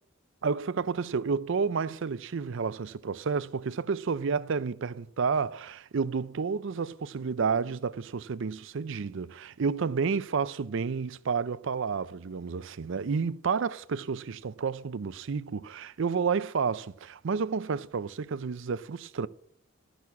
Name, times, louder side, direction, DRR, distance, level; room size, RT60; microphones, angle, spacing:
voice 1, 0.4-19.3, right 5 dB, 65° right, 0.5 m, -30 dB
14.0 x 6.2 x 8.3 m
head